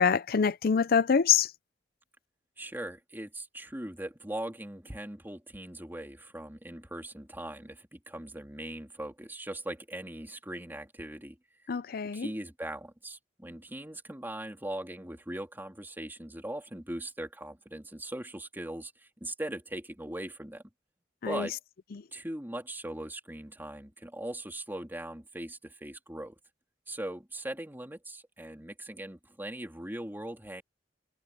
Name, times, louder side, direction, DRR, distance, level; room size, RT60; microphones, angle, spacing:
voice 1, 0.0-1.5 11.7-12.3 21.2-21.5, left 6 dB, 55° left, 0.5 m, -25 dB
voice 2, 2.6-11.4 12.1-20.6 21.2-21.6 22.1-26.3 26.9-30.6, right 1 dB, 10° right, 2.9 m, -40 dB
head